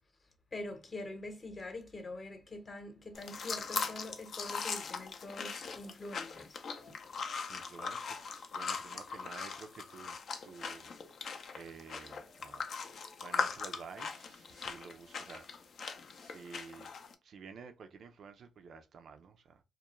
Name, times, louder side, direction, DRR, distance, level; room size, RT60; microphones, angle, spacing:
voice 1, 0.5-6.6 6.9-7.0, left 2 dB, 40° left, 0.8 m, -44 dB
sound 1, 3.1-17.1, left 5 dB, 65° left, 0.4 m, -40 dB
voice 2, 7.5-10.2 10.4-10.9 11.5-12.7 13.2-15.5 16.2-16.9 17.2-19.6, right 5 dB, 65° right, 0.3 m, -51 dB
2.3 x 2.0 x 2.9 m
supercardioid pair, 55°, 0 cm